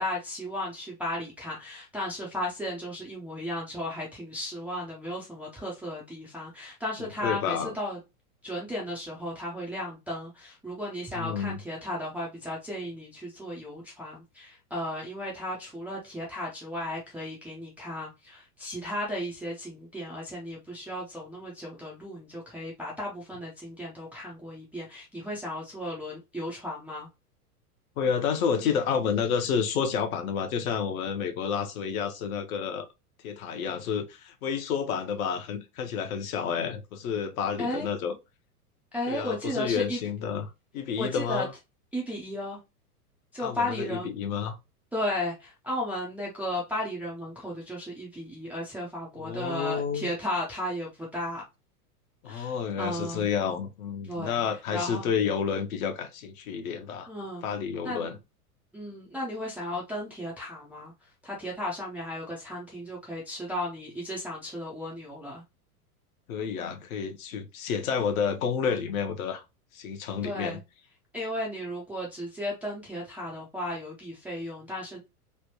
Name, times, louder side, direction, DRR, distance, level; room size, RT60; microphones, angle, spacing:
voice 1, 0.0-8.0 8.4-27.1 37.6-37.9 38.9-40.0 41.0-41.5 41.9-42.6 43.3-44.1 44.9-51.4 52.3-53.3 54.1-54.4 54.7-55.1 57.1-57.4 57.8-58.1 58.7-60.9 61.2-65.4 70.2-70.6 71.1-75.0, left 1 dB, 5° right, 0.3 m, -35 dB
voice 2, 7.0-7.7 11.1-11.6 28.0-32.9 33.2-38.1 39.1-40.5 40.7-41.5 43.4-44.6 49.2-50.1 52.2-57.1 57.4-58.1 66.3-69.4 69.7-70.6, left 7 dB, 65° left, 0.9 m, -30 dB
3.4 x 2.2 x 2.7 m
hypercardioid pair, 105°, 46 cm